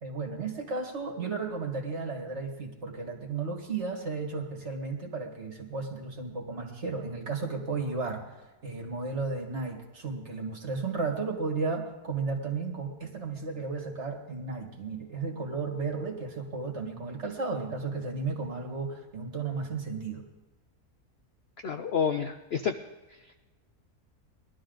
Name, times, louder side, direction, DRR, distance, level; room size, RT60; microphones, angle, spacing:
voice 1, 0.0-8.2 8.6-20.2, right 4 dB, 45° right, 1 dB, 2.2 m, -34 dB
voice 2, 21.6-22.8, left 7 dB, 60° left, 8 dB, 0.7 m, -29 dB
20.0 x 12.5 x 4.0 m, 1.1 s
omnidirectional pair, 1.7 m